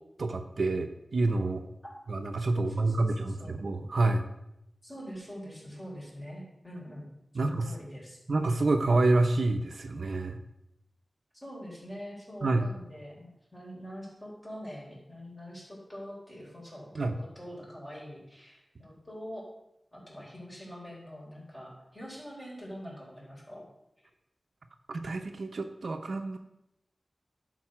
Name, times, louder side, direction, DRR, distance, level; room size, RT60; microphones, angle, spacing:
voice 1, 0.2-1.6 2.1-4.3 7.3-7.7 8.3-10.4 12.4-12.7 16.9-17.2 24.9-26.4, right 2 dB, 75° right, 6 dB, 0.7 m, -28 dB
voice 2, 2.5-3.6 4.8-7.1 7.3-8.2 11.4-19.4 19.9-23.7, equal, 20° left, -4 dB, 3.8 m, -44 dB
11.0 x 4.1 x 6.0 m, 0.85 s
wide cardioid pair, 75°, 0 cm